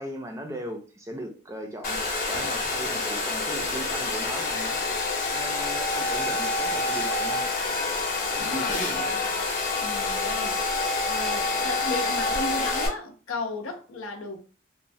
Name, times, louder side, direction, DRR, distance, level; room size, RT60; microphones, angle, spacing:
voice 1, 0.0-2.0 2.3-7.5 8.3-9.1, equal, 15° right, 0.4 m, -38 dB
Domestic sounds home sounds, 1.8-12.9, left 3 dB, 45° left, 0.6 m, -27 dB
voice 2, 8.4-9.2 9.8-10.8 11.1-14.4, left 2 dB, 90° left, 0.6 m, -34 dB
3.0 x 2.1 x 2.6 m
head